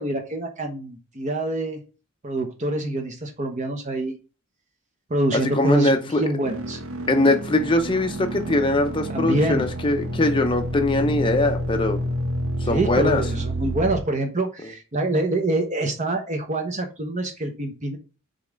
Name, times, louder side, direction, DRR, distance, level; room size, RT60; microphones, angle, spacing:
voice 1, 0.0-1.8 2.2-4.2 5.1-6.8 9.1-9.7 12.7-18.0, right 1 dB, 35° right, 3 dB, 0.8 m, -25 dB
voice 2, 5.3-6.3 7.1-12.0 12.6-13.2, left 2 dB, 25° left, 5 dB, 0.6 m, -22 dB
sound 1, 6.4-14.0, equal, 70° right, 1.0 m, -29 dB
5.3 x 3.6 x 5.1 m, 0.33 s
head